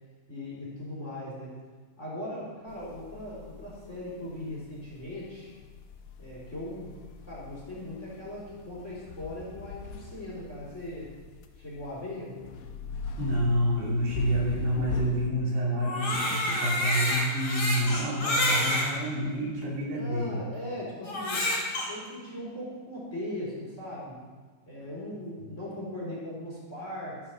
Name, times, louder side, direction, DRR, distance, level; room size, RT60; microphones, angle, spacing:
voice 1, 0.3-1.6 2.0-5.5 6.2-6.9 7.3-11.1 11.6-12.5 20.0-21.4 21.7-24.2 24.7-27.2, left 1 dB, 15° left, -6 dB, 4.1 m, -39 dB
sound 1, 2.7-15.3, left 4 dB, 80° left, 3.0 m, -41 dB
voice 2, 13.2-20.4 25.4-25.5, equal, 80° right, -4 dB, 5.3 m, -28 dB
Crying sobbing, 15.8-18.9 19.6-19.7 21.0-21.9, left 1 dB, 35° left, 3.9 m, -28 dB
12.5 x 10.0 x 6.4 m, 1.4 s
omnidirectional pair, 4.8 m